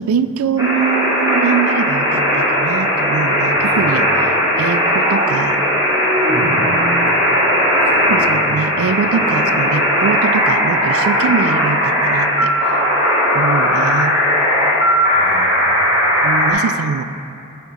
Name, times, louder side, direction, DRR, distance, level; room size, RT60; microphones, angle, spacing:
voice 1, 0.0-4.3 4.6-5.6 6.4-7.1 8.0-12.5 13.3-14.2 16.2-17.0, right 6 dB, 80° right, 13 dB, 0.4 m, -22 dB
sound 1, 0.6-16.5, equal, 20° right, 2.1 m, -16 dB
voice 2, 3.5-4.0 6.3-6.6 7.7-8.5 15.1-16.1, equal, 50° right, -2 dB, 1.3 m, -34 dB
9.5 x 4.4 x 5.6 m, 2.6 s
head